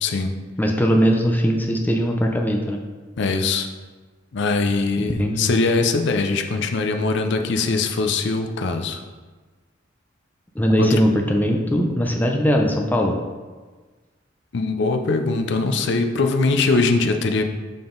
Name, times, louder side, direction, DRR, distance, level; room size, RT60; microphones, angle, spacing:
voice 1, 0.0-0.3 3.2-3.7 4.3-9.0 10.8-11.0 14.5-17.4, left 3 dB, 65° left, 6 dB, 0.5 m, -21 dB
voice 2, 0.6-2.8 5.0-5.5 10.6-13.2, equal, 10° left, 2 dB, 0.5 m, -20 dB
6.8 x 3.7 x 3.8 m, 1.3 s
head